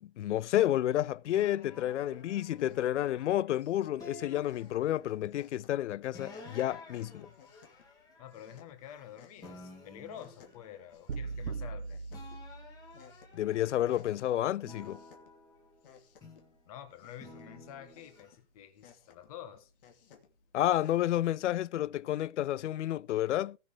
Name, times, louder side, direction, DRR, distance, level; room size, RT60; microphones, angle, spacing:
voice 1, 0.2-7.3 13.3-15.0 20.5-23.6, left 13 dB, 90° left, 0.5 m, -30 dB
sound 1, 1.3-3.5 4.0-5.3 6.1-9.1 9.4-11.8 12.1-14.1 14.6-16.6 17.2-18.3, left 2 dB, 10° left, 2.1 m, -52 dB
sound 2, 1.9-21.0, left 7 dB, 50° left, 2.8 m, -62 dB
voice 2, 8.2-12.0 16.7-19.7, left 10 dB, 30° left, 1.5 m, -49 dB
sound 3, 11.1-13.2, right 4 dB, 75° right, 1.0 m, -39 dB
19.0 x 6.7 x 3.6 m
hypercardioid pair, 165°, 34 cm